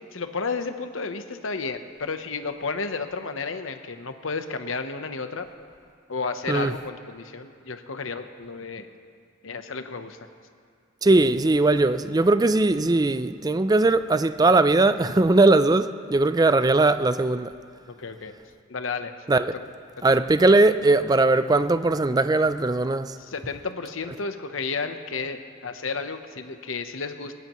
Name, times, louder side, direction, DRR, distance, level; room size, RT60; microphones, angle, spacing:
voice 1, 0.1-5.5 6.1-8.9 9.4-10.2 18.0-18.3 18.7-19.1 19.5-19.6 23.2-27.3, left 4 dB, 80° left, 0.9 m, -32 dB
voice 2, 11.0-17.5 19.3-19.5 20.0-23.2, right 2 dB, 20° right, 0.4 m, -20 dB
21.5 x 17.5 x 3.1 m
head